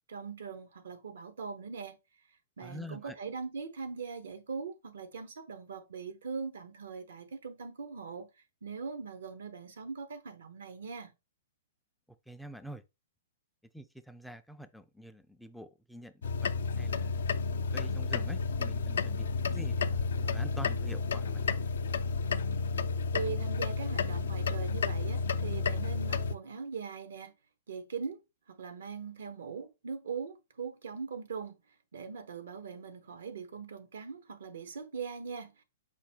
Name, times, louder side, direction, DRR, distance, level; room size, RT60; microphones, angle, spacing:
voice 1, 0.1-2.0 2.6-8.3 8.6-11.1 23.1-27.3 27.7-28.2 28.5-31.6 31.9-35.6, right 5 dB, 80° right, 0.8 m, -41 dB
voice 2, 2.6-3.1 12.3-12.8 13.7-17.3 17.5-21.6, equal, ahead, 0.3 m, -47 dB
sound 1, 16.2-26.4, left 4 dB, 80° left, 0.4 m, -31 dB
4.9 x 2.1 x 4.3 m
hypercardioid pair, 130°, 0 cm